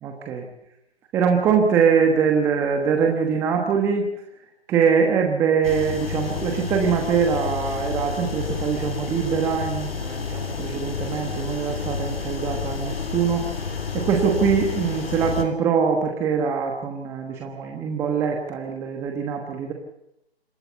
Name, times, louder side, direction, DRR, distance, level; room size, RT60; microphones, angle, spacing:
voice 1, 1.1-4.0 4.7-13.4 13.9-19.7, right 6 dB, 10° right, 2 dB, 1.2 m, -23 dB
sound 1, 5.6-15.4, left 5 dB, 65° left, 3.9 m, -30 dB
26.5 x 12.5 x 8.1 m, 0.83 s
figure-of-eight pair, 155°, 32 cm